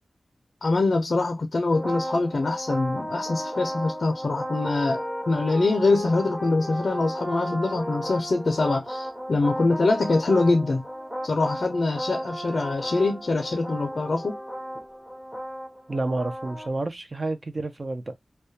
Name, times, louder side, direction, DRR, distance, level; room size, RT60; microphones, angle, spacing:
voice 1, 0.6-10.8 11.2-14.4, left 3 dB, 60° left, 0.4 m, -24 dB
sound 1, 1.7-16.7, equal, 10° right, 0.8 m, -34 dB
voice 2, 15.9-18.1, right 2 dB, 45° right, 0.5 m, -29 dB
2.3 x 2.2 x 2.6 m
wide cardioid pair, 95°, 0 cm